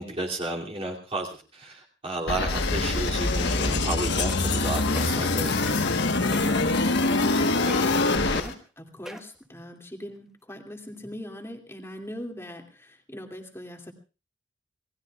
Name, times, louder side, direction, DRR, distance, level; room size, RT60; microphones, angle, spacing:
voice 1, 0.0-5.5, right 2 dB, 30° right, -1 dB, 2.7 m, -32 dB
sound 1, 2.3-8.4, left 2 dB, 60° left, 1.3 m, -24 dB
sound 2, 2.5-3.8 4.9-6.1 7.2-8.5, left 6 dB, 85° left, 3.6 m, -34 dB
sound 3, 3.6-3.9 4.3-4.6 4.9-5.1 5.7-6.0 6.3-6.6 7.0-7.4 7.7-8.0 8.4-8.5 9.1-9.4 10.0-10.1, equal, 5° right, 1.4 m, -41 dB
voice 2, 6.3-6.7 7.7-13.9, equal, 15° left, 2 dB, 2.5 m, -41 dB
28.0 x 19.5 x 2.4 m, 0.33 s
head